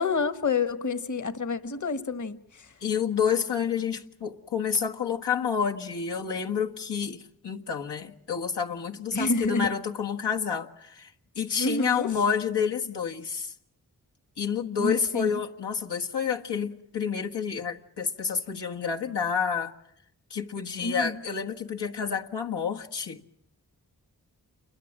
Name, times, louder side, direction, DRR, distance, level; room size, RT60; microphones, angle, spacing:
voice 1, 0.0-2.7 9.1-9.7 11.6-12.1 14.8-15.4 20.8-21.2, left 4 dB, 45° left, 1.6 m, -28 dB
voice 2, 2.8-11.1 11.4-13.5 14.4-19.7 20.3-23.2, left 7 dB, 85° left, 1.7 m, -29 dB
28.5 x 22.5 x 7.5 m
wide cardioid pair, 65°, 40 cm